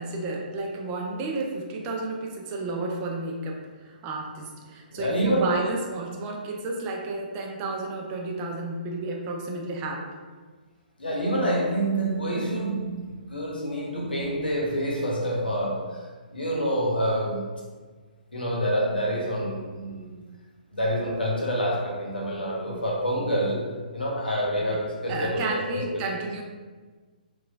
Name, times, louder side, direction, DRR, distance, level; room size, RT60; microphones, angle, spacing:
voice 1, 0.0-10.1 25.1-26.4, right 2 dB, 25° right, 0 dB, 0.4 m, -32 dB
voice 2, 4.9-5.6 11.0-16.0 16.3-17.5 18.3-20.1 20.7-26.0, equal, 80° left, -3 dB, 0.8 m, -27 dB
3.0 x 2.3 x 2.3 m, 1.4 s
figure-of-eight pair, 130°, 5 cm